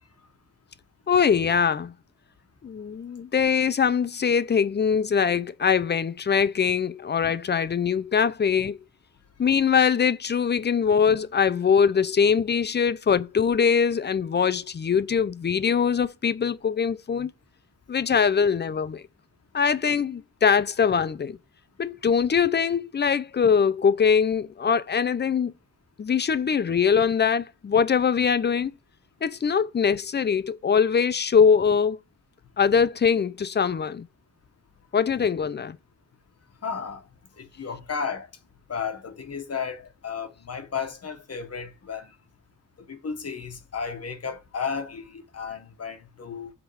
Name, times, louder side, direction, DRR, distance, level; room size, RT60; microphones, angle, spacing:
voice 1, 1.1-1.9 2.6-8.8 9.4-17.3 17.9-19.0 19.5-21.4 21.8-25.5 26.0-28.7 29.2-32.0 32.6-34.1 34.9-35.8, left 6 dB, 35° left, 0.5 m, -22 dB
voice 2, 36.6-37.0 37.4-38.3 38.7-42.1 42.9-46.5, left 6 dB, 50° left, 1.4 m, -33 dB
8.1 x 3.7 x 6.3 m
wide cardioid pair, 160°, 32 cm